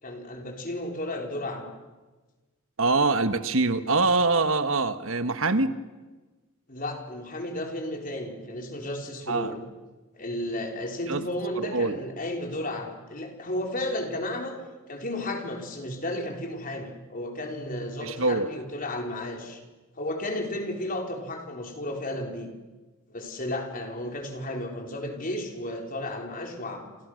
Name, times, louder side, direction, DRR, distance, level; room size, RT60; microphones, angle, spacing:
voice 1, 0.0-1.7 6.7-9.6 10.1-14.6 14.9-19.6 20.0-22.5 23.1-26.9, left 1 dB, 40° left, 2 dB, 4.3 m, -33 dB
voice 2, 2.8-5.7 9.3-9.5 11.1-11.2 11.6-12.0 18.0-18.5, right 3 dB, 65° right, 10 dB, 1.4 m, -24 dB
28.0 x 28.0 x 6.5 m, 1.2 s
head